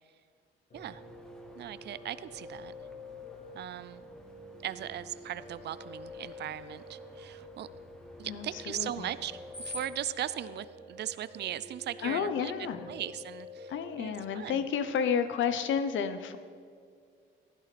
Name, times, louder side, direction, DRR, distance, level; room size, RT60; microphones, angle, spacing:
Piano, 0.7-14.4, left 2 dB, 40° left, 3.2 m, -48 dB
Screech, 0.7-10.1, left 1 dB, 5° left, 1.1 m, -52 dB
voice 1, 1.6-2.7 3.5-4.0 4.6-7.7 8.2-9.3 9.6-13.7 14.0-14.6, right 11 dB, 60° right, 15 dB, 0.5 m, -38 dB
voice 2, 8.2-9.1 12.0-12.9 13.7-16.4, left 7 dB, 75° left, 10 dB, 0.9 m, -31 dB
15.5 x 11.5 x 4.3 m, 2.2 s
cardioid pair, 90°, 20 cm